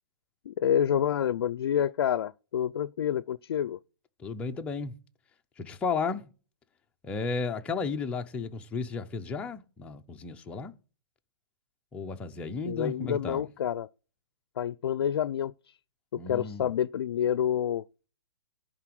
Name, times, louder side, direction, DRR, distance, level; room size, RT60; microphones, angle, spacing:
voice 1, 0.5-3.8 12.7-13.9 14.6-15.7 16.1-17.8, left 9 dB, 70° left, 0.4 m, -28 dB
voice 2, 4.2-4.9 5.6-6.3 7.0-10.7 11.9-13.5 16.2-16.7, left 4 dB, 10° left, 0.6 m, -33 dB
11.0 x 3.9 x 7.6 m
hypercardioid pair, 160°, 13 cm